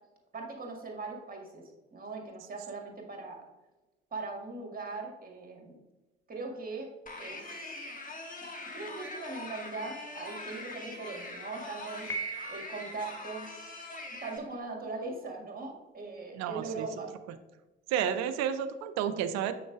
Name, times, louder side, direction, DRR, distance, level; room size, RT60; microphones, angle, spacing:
voice 1, 0.3-1.6 1.9-3.4 4.1-5.8 6.3-6.9 7.2-7.8 8.7-12.1 12.5-13.5 14.2-17.1 18.0-18.3, right 3 dB, 30° right, 1 dB, 1.9 m, -40 dB
sound 1, 7.1-14.4, left 2 dB, 25° left, 1.4 m, -43 dB
Piano, 12.1-13.2, right 3 dB, 10° left, 0.9 m, -38 dB
voice 2, 16.3-16.9 17.9-19.5, right 9 dB, 60° right, 11 dB, 0.5 m, -31 dB
7.2 x 6.1 x 2.4 m, 1.1 s
figure-of-eight pair, 40°, 30 cm